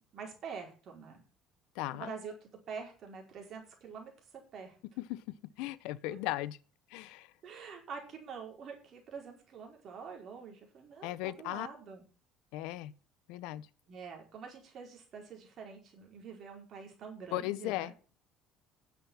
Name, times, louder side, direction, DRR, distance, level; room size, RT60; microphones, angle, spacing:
voice 1, 0.1-1.2 1.9-4.8 6.1-6.2 7.4-12.0 13.9-17.9, right 6 dB, 40° right, 4.9 m, -46 dB
voice 2, 1.8-2.1 5.1-5.2 5.6-6.6 6.9-7.3 11.0-11.7 12.5-12.9 13.3-13.7 17.3-17.9, left 16 dB, 80° left, 0.8 m, -36 dB
10.5 x 7.6 x 7.2 m
cardioid pair, 150°, 0 cm